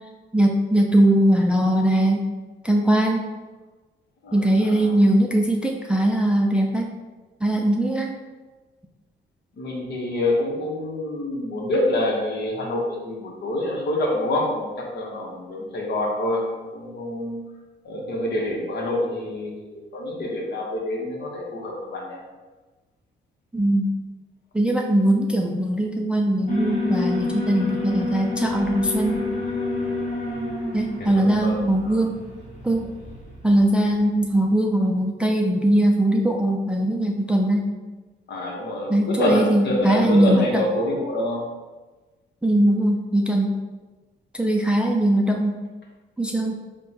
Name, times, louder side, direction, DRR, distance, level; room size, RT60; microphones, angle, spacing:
voice 1, 0.3-2.3 2.6-3.2 4.3-6.9 7.4-8.1 23.5-23.9 24.5-29.2 30.7-32.2 32.6-32.9 33.4-37.6 38.9-40.6 42.4-43.5 44.3-45.6 46.2-46.6, right 1 dB, 5° right, 1 dB, 0.4 m, -20 dB
voice 2, 4.2-4.9 9.6-17.4 17.8-22.2 31.0-32.0 38.3-41.4, left 1 dB, 60° left, -1 dB, 1.0 m, -27 dB
Alarm, 26.5-33.6, left 3 dB, 40° left, 1.3 m, -29 dB
3.5 x 2.2 x 4.2 m, 1.2 s
cardioid pair, 90°, 20 cm